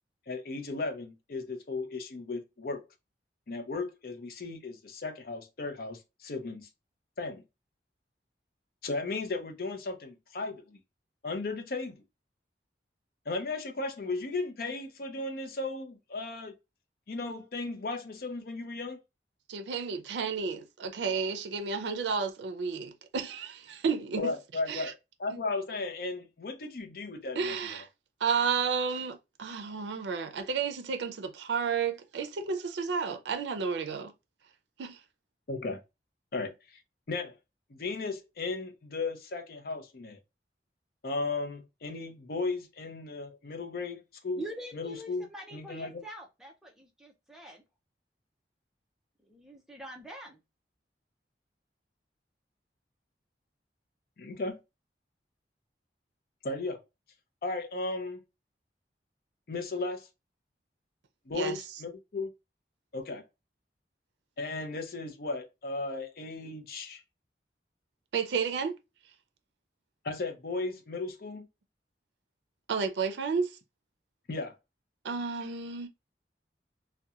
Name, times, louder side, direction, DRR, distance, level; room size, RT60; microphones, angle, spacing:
voice 1, 0.3-2.8 3.5-6.7 7.2-7.4 8.8-10.8 11.2-12.0 13.3-16.5 17.1-19.0 24.2-27.6 35.5-35.8 36.3-36.8 37.1-37.4 37.7-40.2 41.0-44.4 44.7-46.0 54.2-54.6 56.4-56.8 57.4-58.2 59.5-60.1 61.3-62.3 62.9-63.2 64.4-67.0 70.0-71.5 74.3-74.5, left 3 dB, 55° left, 0.5 m, -35 dB
voice 2, 19.5-24.3 24.7-24.9 27.3-27.9 28.2-34.1 34.8-35.0 61.3-61.6 68.1-68.8 72.7-73.5 75.0-75.9, right 5 dB, 85° right, 0.4 m, -32 dB
voice 3, 44.4-47.6 49.2-50.4, right 1 dB, 5° right, 0.5 m, -44 dB
2.8 x 2.2 x 2.3 m
head